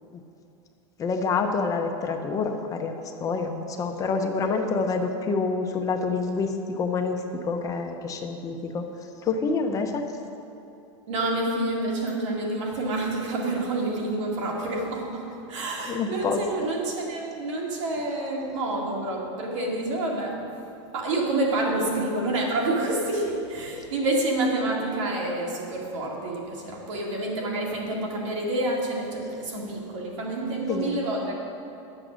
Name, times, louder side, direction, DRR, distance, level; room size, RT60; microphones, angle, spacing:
voice 1, 1.0-8.9 9.2-10.1 15.9-16.4 30.7-31.0, left 4 dB, 20° left, 4 dB, 0.7 m, -27 dB
voice 2, 11.1-20.7 20.9-31.3, right 2 dB, 85° right, -1 dB, 2.2 m, -28 dB
10.0 x 7.7 x 6.2 m, 2.8 s
supercardioid pair, 155°, 16 cm